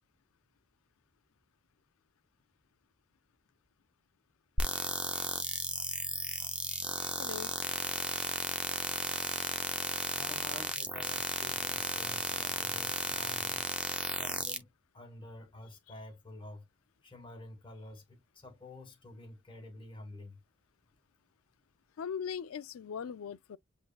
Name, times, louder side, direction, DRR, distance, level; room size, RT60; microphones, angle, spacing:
sound 1, 4.6-14.6, right 1 dB, 5° right, 0.5 m, -34 dB
voice 1, 7.2-7.5 22.0-23.6, left 7 dB, 75° left, 0.4 m, -39 dB
voice 2, 10.1-13.7 14.0-14.7 14.9-16.6 17.0-20.4, left 1 dB, 25° left, 1.4 m, -49 dB
7.7 x 2.6 x 2.4 m
head